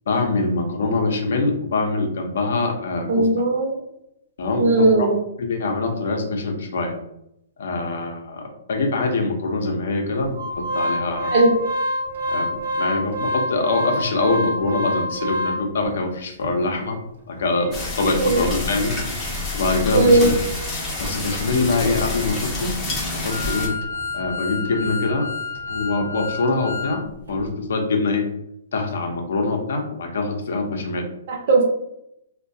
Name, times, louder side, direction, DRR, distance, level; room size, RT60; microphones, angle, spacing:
voice 1, 0.1-3.3 4.4-5.1 5.4-7.0 7.6-11.4 12.3-17.0 17.3-17.7 18.0-19.2 19.5-20.3 21.0-22.7 23.1-23.7 24.1-25.3 25.7-28.3 28.7-31.1, left 3 dB, 65° left, 3 dB, 0.5 m, -24 dB
voice 2, 3.1-3.8 4.6-5.2 11.3-11.5 18.2-18.4 19.9-20.3 31.3-31.6, right 2 dB, 40° right, 0 dB, 0.7 m, -17 dB
Organ, 10.3-15.9 16.4-16.5 16.8-16.9 17.4-27.0 27.3-27.4, left 1 dB, 80° right, 0.8 m, -29 dB
sound 1, 17.7-23.7, left 3 dB, 15° left, 0.5 m, -28 dB
2.2 x 2.1 x 2.5 m, 0.79 s
hypercardioid pair, 165°, 0 cm